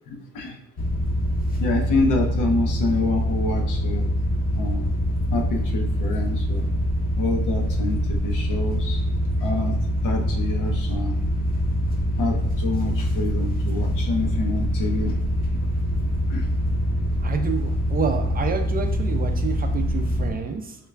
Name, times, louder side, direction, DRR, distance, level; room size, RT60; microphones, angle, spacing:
voice 1, 0.1-0.5 1.6-4.0 4.6-4.9 5.3-6.7 7.2-9.0 9.4-9.7 10.0-11.2 12.2-15.2 16.3-16.4, left 2 dB, 80° left, 2 dB, 0.8 m, -27 dB
sound 1, 0.8-20.3, equal, 30° left, 0.6 m, -24 dB
voice 2, 17.2-20.8, right 5 dB, 30° right, 5 dB, 0.4 m, -29 dB
3.7 x 2.2 x 3.2 m, 0.71 s
cardioid pair, 90°, 30 cm